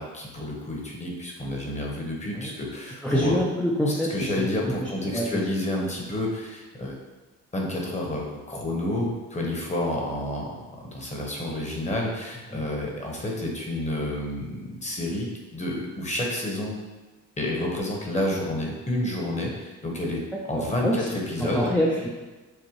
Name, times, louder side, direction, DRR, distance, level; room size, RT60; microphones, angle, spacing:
voice 1, 0.0-3.3 4.1-6.9 7.5-10.5 10.8-16.7 17.4-20.2 20.5-21.7, left 1 dB, 25° left, -1 dB, 1.1 m, -29 dB
voice 2, 3.0-4.5 4.8-5.4 12.5-12.7 20.5-21.1 21.4-22.1, equal, 5° left, -5 dB, 0.5 m, -26 dB
6.5 x 2.2 x 3.1 m, 1.2 s
cardioid pair, 90°, 30 cm